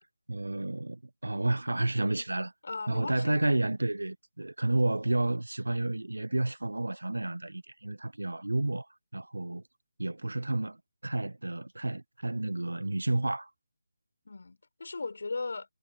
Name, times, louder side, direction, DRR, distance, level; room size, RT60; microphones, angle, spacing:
voice 1, 0.3-2.5 2.9-8.9 9.1-9.6 10.0-10.8 11.0-13.5, right 2 dB, 90° right, 0.4 m, -30 dB
voice 2, 2.6-3.4 14.2-15.7, left 3 dB, 65° left, 4.8 m, -37 dB
figure-of-eight pair, 160°, 0 cm